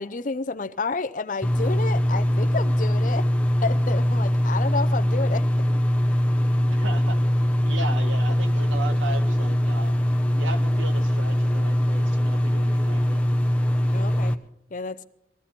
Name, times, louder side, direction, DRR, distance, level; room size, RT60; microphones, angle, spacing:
voice 1, 0.0-3.3 3.6-5.5 13.9-14.4 14.7-15.1, left 4 dB, 40° left, 0.6 m, -30 dB
sound 1, 1.4-14.3, equal, 5° left, 0.7 m, -22 dB
voice 2, 6.7-7.2 7.6-9.9 10.4-13.2, right 2 dB, 90° right, 1.7 m, -36 dB
21.0 x 14.5 x 4.3 m
head